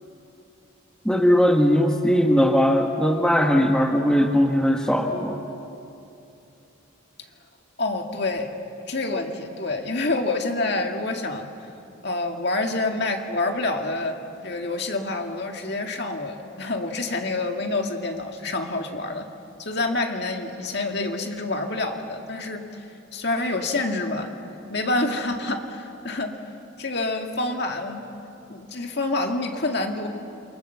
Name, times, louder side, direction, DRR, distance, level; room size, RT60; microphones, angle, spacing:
voice 1, 1.0-5.4, equal, 5° left, 2 dB, 1.2 m, -19 dB
voice 2, 7.8-8.5 8.9-11.5 12.0-14.2 14.4-19.2 19.6-22.8 23.1-24.3 24.7-26.3 26.8-28.0 28.5-30.1, left 2 dB, 55° left, 3 dB, 2.1 m, -27 dB
28.5 x 24.0 x 7.1 m, 2.7 s
head